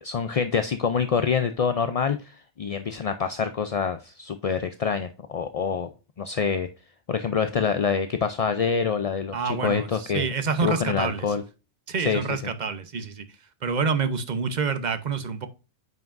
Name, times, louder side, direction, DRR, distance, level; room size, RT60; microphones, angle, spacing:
voice 1, 0.0-5.9 6.2-6.7 7.1-10.3 10.6-11.4 12.0-12.4, left 6 dB, 50° left, 0.4 m, -26 dB
voice 2, 9.3-11.3 11.9-13.2 13.6-15.5, right 5 dB, 40° right, 0.9 m, -27 dB
9.2 x 5.8 x 2.6 m
omnidirectional pair, 1.2 m